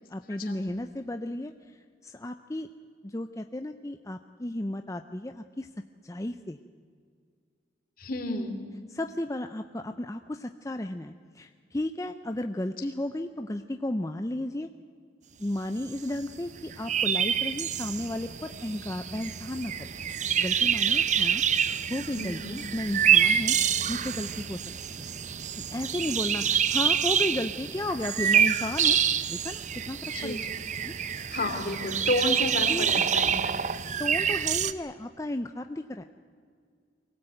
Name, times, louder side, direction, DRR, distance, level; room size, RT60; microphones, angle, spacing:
voice 1, 0.1-1.5 2.0-2.7 3.0-5.7 6.0-6.6 8.9-14.7 15.4-19.9 20.4-21.4 21.9-23.6 23.9-24.6 25.0-25.1 25.6-29.0 29.3-30.4 30.8-30.9 32.7-32.9 34.0-36.0, left 1 dB, 20° left, 7 dB, 0.6 m, -34 dB
voice 2, 8.0-8.6 22.1-22.5 30.1-30.4 31.3-33.7, left 2 dB, 50° left, 5 dB, 2.8 m, -31 dB
sound 1, 15.9-16.0 16.2-16.3 16.5-34.7, right 8 dB, 40° right, 0.7 m, -27 dB
23.5 x 17.0 x 9.1 m, 2.1 s
head